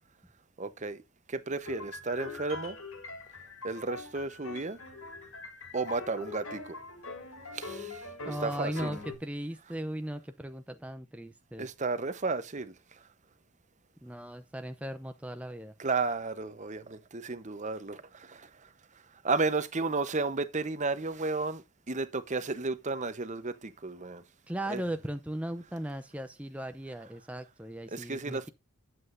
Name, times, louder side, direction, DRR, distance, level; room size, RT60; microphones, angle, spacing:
voice 1, 0.6-1.0 1.3-2.8 3.6-4.8 5.7-6.7 7.5-8.9 11.6-12.7 15.8-18.7 19.2-24.2 24.7-24.8 27.9-28.5, right 3 dB, 35° right, 0.9 m, -33 dB
sound 1, 1.6-9.1, left 3 dB, 75° left, 5.8 m, -43 dB
voice 2, 8.3-11.7 14.0-15.7 24.5-28.5, right 1 dB, 5° right, 0.6 m, -37 dB
11.0 x 7.8 x 2.6 m
head